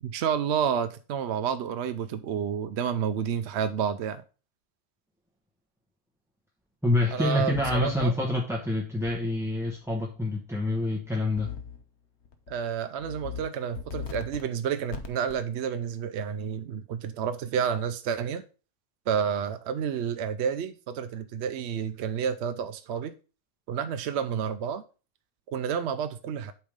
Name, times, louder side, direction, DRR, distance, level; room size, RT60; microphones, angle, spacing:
voice 1, 0.0-4.2 7.1-8.1 12.5-18.4 19.1-23.1 23.7-24.8 25.5-26.5, right 7 dB, 65° right, 0.8 m, -30 dB
voice 2, 6.8-11.5, left 2 dB, 5° right, 0.8 m, -27 dB
sound 1, 7.5-8.0 9.1-9.2 11.4-11.8 12.3-12.5 13.0-13.4 13.8-14.4 14.9-15.4, left 6 dB, 60° left, 1.1 m, -38 dB
8.3 x 3.5 x 5.0 m
omnidirectional pair, 1.3 m